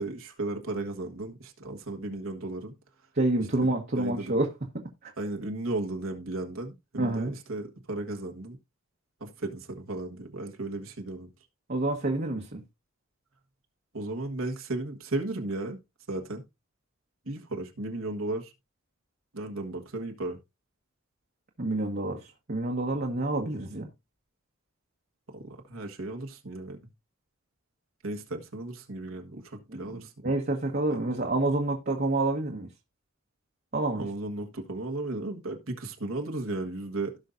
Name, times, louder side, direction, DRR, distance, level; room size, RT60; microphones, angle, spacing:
voice 1, 0.0-2.7 3.6-3.7 3.9-4.3 5.2-8.6 9.2-11.3 13.9-15.8 16.1-16.4 17.2-18.5 19.3-20.4 25.3-26.8 28.0-30.3 30.9-31.0 33.9-37.2, right 2 dB, 80° right, 1.7 m, -35 dB
voice 2, 3.1-4.5 4.7-5.1 7.0-7.3 11.7-12.6 21.6-23.9 29.7-29.8 30.2-32.7 33.7-34.1, right 2 dB, 50° right, 1.3 m, -28 dB
16.5 x 5.6 x 2.6 m
head